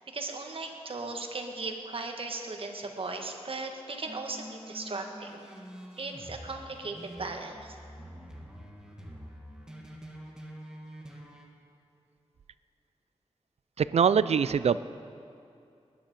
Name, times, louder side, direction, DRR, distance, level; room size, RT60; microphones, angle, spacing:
voice 1, 0.1-5.4 6.0-7.8, right 3 dB, 55° right, 3 dB, 1.4 m, -37 dB
sound 1, 4.1-11.4, equal, 5° right, 1.6 m, -46 dB
voice 2, 13.8-14.8, right 7 dB, 70° right, 16 dB, 0.4 m, -23 dB
20.5 x 10.0 x 5.3 m, 2.6 s
wide cardioid pair, 105°, 11 cm